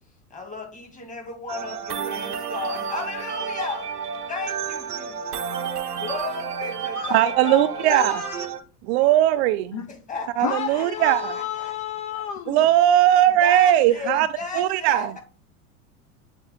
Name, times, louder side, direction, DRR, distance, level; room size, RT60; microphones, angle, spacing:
voice 1, 0.3-3.9 4.3-5.4 6.0-8.1 9.9-11.7 13.4-15.2, left 4 dB, 15° left, 2.2 m, -34 dB
sound 1, 1.5-8.6, right 7 dB, 90° right, 0.8 m, -31 dB
voice 2, 7.1-8.2 8.9-9.8 10.4-11.4 12.5-14.3 14.5-15.1, right 12 dB, 50° right, 0.4 m, -19 dB
voice 3, 7.8-8.5 9.7-9.8 10.4-12.6, left 9 dB, 40° left, 0.6 m, -31 dB
8.1 x 3.3 x 3.5 m
hypercardioid pair, 85°, 45 cm